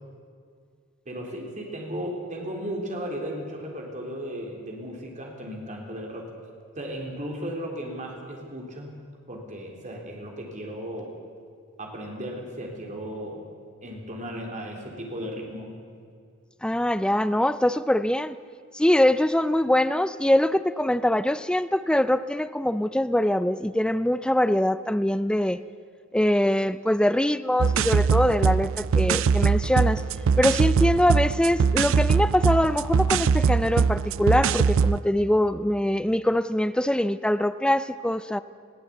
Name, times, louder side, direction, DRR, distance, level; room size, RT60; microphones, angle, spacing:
voice 1, 1.1-6.3 6.8-8.9 9.3-11.1 11.8-13.5 13.8-15.7, equal, 35° right, 0 dB, 3.5 m, -35 dB
voice 2, 16.6-18.4 18.7-25.6 26.1-30.0 30.4-38.4, left 1 dB, 5° left, 14 dB, 0.5 m, -23 dB
sound 1, 27.6-35.0, right 5 dB, 65° right, 0.4 m, -22 dB
20.5 x 15.0 x 8.3 m, 2.2 s
head